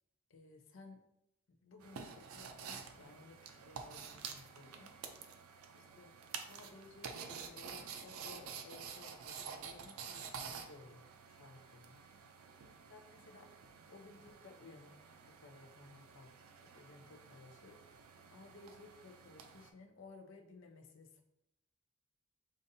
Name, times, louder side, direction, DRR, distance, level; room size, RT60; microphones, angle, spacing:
voice 1, 0.3-1.0 1.6-4.9 5.7-6.1 6.5-12.0 12.9-13.5 13.9-15.0 15.2-17.8 18.3-21.2, left 3 dB, 65° left, 5 dB, 0.5 m, -58 dB
sound 1, 1.8-19.7, right 6 dB, 85° right, 0.4 m, -50 dB
5.2 x 2.5 x 2.6 m, 0.83 s
head